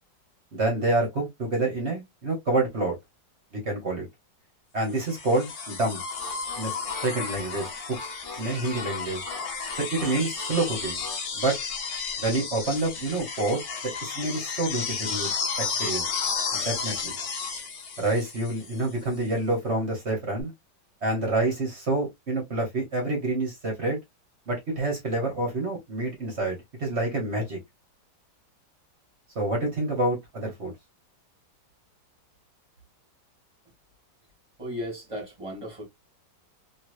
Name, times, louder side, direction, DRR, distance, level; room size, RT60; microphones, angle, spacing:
voice 1, 0.5-3.0 3.5-4.1 4.7-6.0 6.6-8.0 8.4-9.2 9.8-11.0 11.3-11.6 12.2-13.6 14.0-16.1 16.5-17.2 18.0-20.5 21.0-24.0 24.5-27.6 29.3-30.7, right 2 dB, 40° right, 1.2 m, -28 dB
sound 1, 4.9-19.0 20.4-20.5, left 5 dB, 60° left, 1.3 m, -33 dB
Harmonica, 6.2-11.3, left 2 dB, 35° left, 0.3 m, -42 dB
voice 2, 34.6-35.8, equal, 20° right, 1.5 m, -35 dB
3.2 x 3.1 x 2.5 m
omnidirectional pair, 2.0 m